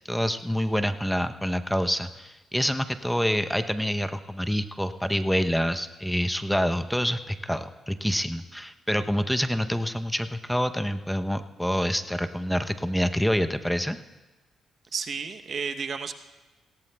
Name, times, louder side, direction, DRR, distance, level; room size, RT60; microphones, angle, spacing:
voice 1, 0.1-14.0, equal, 5° left, 8 dB, 0.7 m, -27 dB
voice 2, 14.9-16.1, right 5 dB, 55° right, 7 dB, 0.8 m, -32 dB
18.5 x 17.5 x 2.3 m, 1.1 s
cardioid pair, 70°, 0 cm